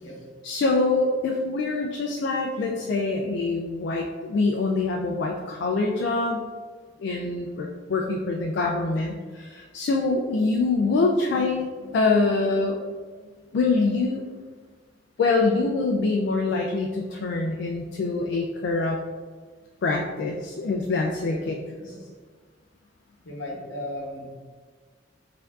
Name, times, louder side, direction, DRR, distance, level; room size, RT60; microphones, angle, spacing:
voice 1, 0.4-6.4 7.0-12.8 13.5-14.2 15.2-19.0 19.8-21.5 21.9-22.0, left 3 dB, 65° left, 1 dB, 0.3 m, -25 dB
voice 2, 21.2-22.0 23.2-24.4, left 1 dB, 85° left, -2 dB, 0.8 m, -37 dB
4.3 x 2.6 x 2.3 m, 1.5 s
head